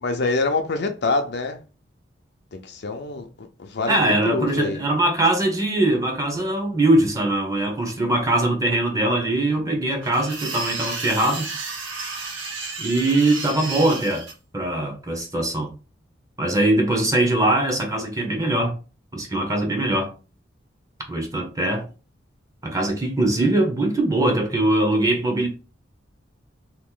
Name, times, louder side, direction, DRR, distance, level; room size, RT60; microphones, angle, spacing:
voice 1, 0.0-1.6 2.5-4.8, left 3 dB, 60° left, 0.6 m, -26 dB
voice 2, 3.9-11.5 12.8-14.2 14.5-15.7 16.4-18.7 19.1-20.1 21.1-21.8 22.6-25.5, right 1 dB, 20° right, 0.8 m, -21 dB
sound 1, 10.0-14.3, right 4 dB, 85° right, 1.1 m, -32 dB
2.9 x 2.5 x 3.8 m
head